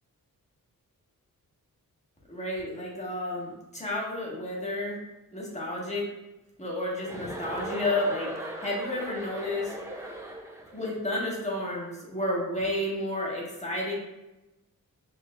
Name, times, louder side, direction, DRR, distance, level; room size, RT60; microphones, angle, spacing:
voice 1, 2.3-5.0 5.3-6.0 6.6-8.3 8.6-9.7 10.7-13.9, left 1 dB, 20° left, -4 dB, 1.2 m, -31 dB
Chuckle chortle, 7.0-10.8, right 1 dB, 10° right, 0.5 m, -38 dB
5.8 x 3.1 x 2.2 m, 0.98 s
wide cardioid pair, 110°, 35 cm